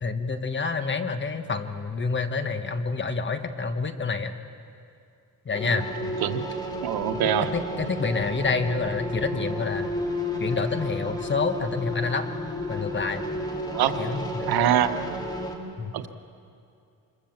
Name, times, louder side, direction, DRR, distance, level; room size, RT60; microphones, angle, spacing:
voice 1, 0.0-4.3 5.4-5.9 7.5-9.9 10.4-12.3 12.7-13.2 13.9-14.5 15.8-15.9, left 4 dB, 30° left, 9 dB, 1.3 m, -28 dB
sound 1, 5.5-15.6, left 1 dB, 10° left, 2.4 m, -32 dB
voice 2, 6.8-7.5 13.7-13.9 14.5-14.9 15.9-16.1, right 11 dB, 90° right, 8 dB, 1.3 m, -23 dB
26.0 x 22.5 x 7.3 m, 2.5 s
cardioid pair, 135°, 36 cm